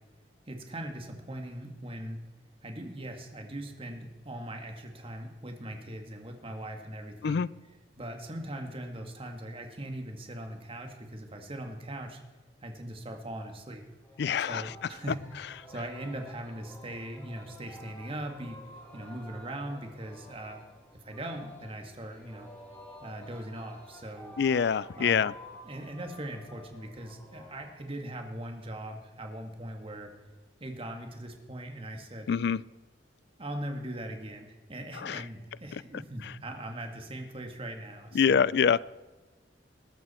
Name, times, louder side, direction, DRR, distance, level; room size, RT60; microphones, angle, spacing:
voice 1, 0.5-2.2 2.6-7.4 8.0-12.2 12.6-13.8 14.4-15.2 15.7-18.6 18.9-20.6 21.0-22.5 23.0-24.4 25.0-25.3 25.7-30.1 30.6-32.3 33.4-38.5, right 1 dB, 30° right, 4 dB, 2.0 m, -40 dB
Singing, 14.0-27.7, left 1 dB, 10° left, 4.3 m, -51 dB
voice 2, 14.2-14.7 24.4-25.3 32.3-32.6 34.9-35.2 36.2-36.3 38.1-38.8, left 7 dB, 65° left, 21 dB, 0.4 m, -25 dB
21.0 x 12.5 x 4.4 m, 1.2 s
head